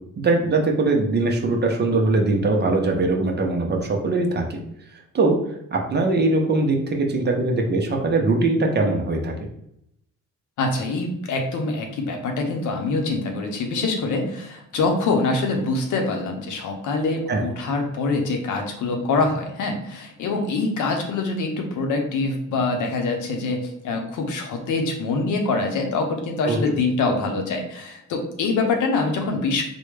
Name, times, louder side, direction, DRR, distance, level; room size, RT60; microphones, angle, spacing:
voice 1, 0.2-4.6 5.1-5.4 5.7-9.3 17.3-17.4 26.4-26.6, right 3 dB, 35° right, 2 dB, 0.7 m, -21 dB
voice 2, 10.6-29.6, left 3 dB, 80° left, 3 dB, 0.8 m, -24 dB
3.7 x 2.2 x 3.2 m, 0.78 s
cardioid pair, 90°, 30 cm